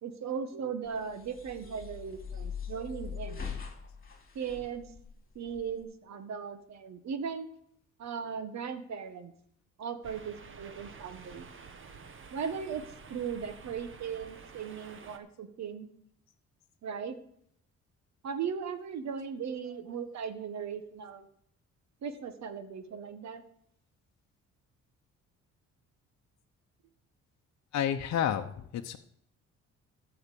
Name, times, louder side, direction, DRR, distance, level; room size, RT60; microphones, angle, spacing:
voice 1, 0.0-3.5 4.3-4.9 5.3-7.5 8.0-9.3 9.8-11.5 12.3-12.8 13.1-15.9 16.8-17.2 18.2-21.3 22.0-23.4, right 6 dB, 65° right, 10 dB, 1.5 m, -37 dB
sound 1, 0.8-5.8, left 7 dB, 30° left, 2.9 m, -42 dB
sound 2, 10.0-15.2, right 5 dB, 40° right, 1.4 m, -50 dB
voice 2, 27.7-29.0, left 9 dB, 65° left, 4 dB, 0.8 m, -30 dB
14.0 x 5.8 x 6.9 m, 0.68 s
cardioid pair, 90°, 30 cm